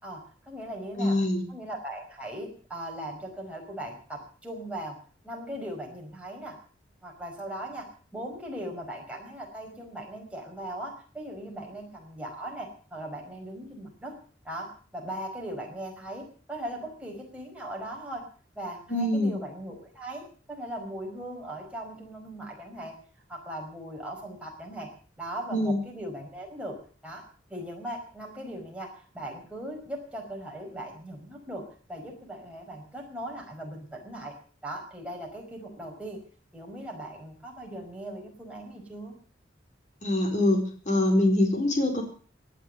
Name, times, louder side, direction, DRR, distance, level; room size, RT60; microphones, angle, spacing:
voice 1, 0.0-1.2 1.5-5.0 5.2-6.6 7.0-14.1 14.4-18.2 18.5-22.9 23.3-24.9 25.2-26.8 27.0-27.2 27.5-34.3 34.6-36.2 36.5-39.1, right 1 dB, 5° right, 0 dB, 5.0 m, -39 dB
voice 2, 1.0-1.4 18.9-19.4 25.5-25.8 40.0-40.6 40.9-42.0, left 1 dB, 40° left, 2 dB, 4.1 m, -24 dB
18.5 x 11.0 x 6.6 m, 0.44 s
head